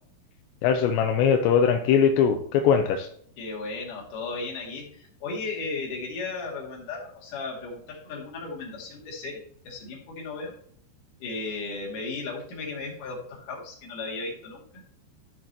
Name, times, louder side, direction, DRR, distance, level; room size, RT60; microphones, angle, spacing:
voice 1, 0.6-3.1, left 7 dB, 85° left, 4 dB, 2.9 m, -21 dB
voice 2, 3.4-10.5 11.2-14.8, left 3 dB, 50° left, -3 dB, 3.7 m, -35 dB
13.5 x 6.6 x 2.9 m, 0.64 s
omnidirectional pair, 5.1 m